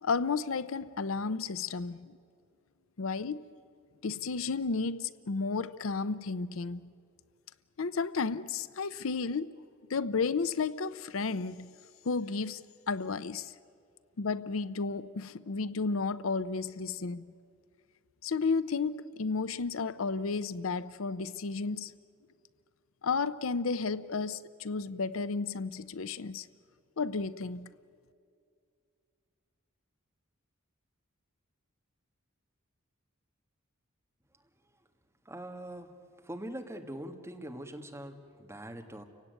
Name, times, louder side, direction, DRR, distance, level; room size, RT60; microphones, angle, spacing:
voice 1, 0.0-2.1 3.0-3.4 4.0-6.9 7.8-9.5 9.9-11.7 12.1-13.5 14.2-17.3 18.2-21.9 23.0-26.5 27.0-27.7, left 4 dB, 75° left, 0.6 m, -32 dB
voice 2, 35.3-35.9 36.2-39.0, right 1 dB, 15° right, 1.8 m, -42 dB
30.0 x 17.0 x 9.4 m
head